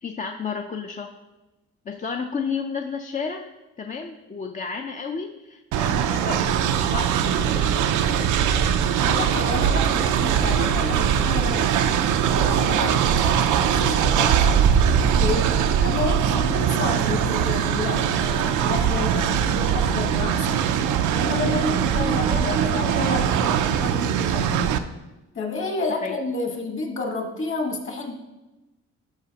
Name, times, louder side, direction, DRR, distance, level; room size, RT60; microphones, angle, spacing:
voice 1, 0.0-1.1 1.9-3.5 3.8-7.7 26.0-26.2, left 5 dB, 25° left, 3 dB, 0.4 m, -32 dB
Train, 5.7-24.8, right 8 dB, 75° right, 0.5 m, -21 dB
voice 2, 9.0-11.9 12.3-20.6 21.1-24.8 25.3-28.1, left 3 dB, 45° left, 3 dB, 1.5 m, -30 dB
12.0 x 4.8 x 2.9 m, 1.1 s
cardioid pair, 90°, 30 cm